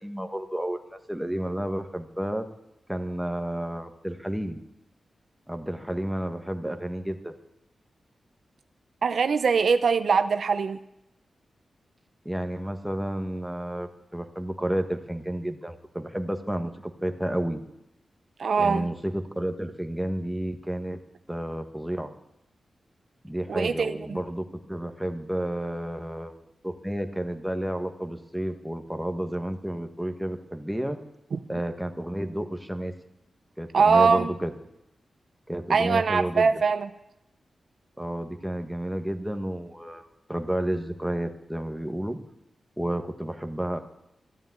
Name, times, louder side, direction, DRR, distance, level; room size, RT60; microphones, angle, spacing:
voice 1, 0.0-2.4 2.9-4.6 5.5-7.3 12.2-17.6 18.6-21.0 21.3-22.1 23.2-31.0 31.5-32.9 33.6-34.5 35.5-36.5 38.0-42.2 42.8-43.8, right 1 dB, 5° right, 6 dB, 1.5 m, -31 dB
voice 2, 9.0-10.8 18.4-18.9 23.5-24.2 31.3-31.4 33.7-34.3 35.7-36.9, right 5 dB, 70° right, 10 dB, 0.7 m, -22 dB
12.5 x 12.0 x 9.3 m, 0.85 s
wide cardioid pair, 100°, 0 cm